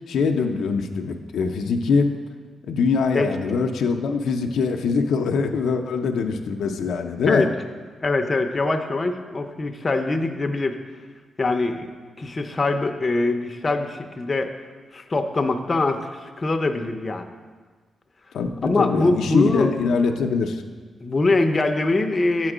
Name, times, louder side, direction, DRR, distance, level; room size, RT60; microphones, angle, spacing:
voice 1, 0.1-2.1 2.6-7.5 18.3-20.6, left 5 dB, 90° left, 4 dB, 0.5 m, -23 dB
voice 2, 8.0-10.8 11.4-11.9 12.2-14.5 14.9-17.3 18.6-19.7 21.0-22.5, left 2 dB, 30° left, 5 dB, 0.5 m, -23 dB
8.7 x 4.4 x 4.9 m, 1.5 s
cardioid pair, 100°, 0 cm